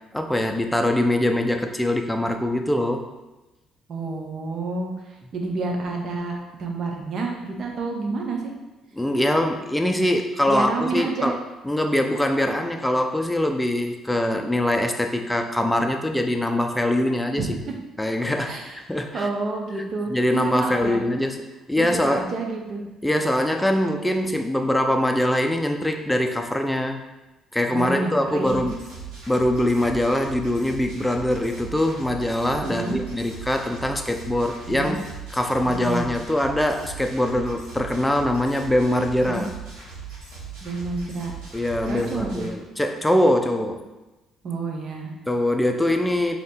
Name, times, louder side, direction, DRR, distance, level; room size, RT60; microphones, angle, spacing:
voice 1, 0.1-3.1 8.9-11.4 11.6-17.5 18.0-19.3 20.1-22.3 23.0-27.0 27.5-28.8 29.3-35.0 35.3-39.5 41.5-43.8 45.3-46.4, left 1 dB, 5° left, 4 dB, 0.4 m, -23 dB
voice 2, 3.9-8.5 10.5-11.3 17.4-17.6 18.4-18.8 19.1-21.0 21.8-22.8 27.7-28.6 32.6-33.0 34.7-35.0 35.7-36.1 39.2-39.5 40.6-41.3 41.9-42.5 44.4-45.1, right 3 dB, 55° right, 1 dB, 0.7 m, -29 dB
sound 1, 28.4-42.5, right 6 dB, 85° right, 1.4 m, -39 dB
3.1 x 2.8 x 4.4 m, 1.1 s
cardioid pair, 80°, 0 cm